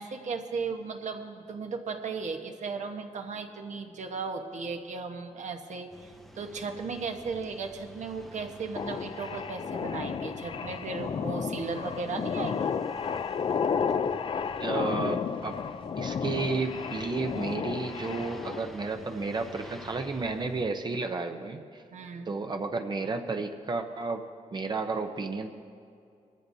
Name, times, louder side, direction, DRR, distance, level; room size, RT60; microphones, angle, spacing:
voice 1, 0.0-12.7 21.9-22.3, right 4 dB, 70° right, 5 dB, 1.1 m, -36 dB
sound 1, 5.9-20.6, equal, ahead, 0.6 m, -49 dB
sound 2, 8.8-18.7, left 6 dB, 45° left, 0.4 m, -32 dB
voice 2, 14.6-15.6 16.0-21.8 22.3-24.2 24.5-25.5, right 3 dB, 35° right, 5 dB, 0.6 m, -32 dB
22.5 x 14.5 x 2.7 m, 2.5 s
wide cardioid pair, 165°, 13 cm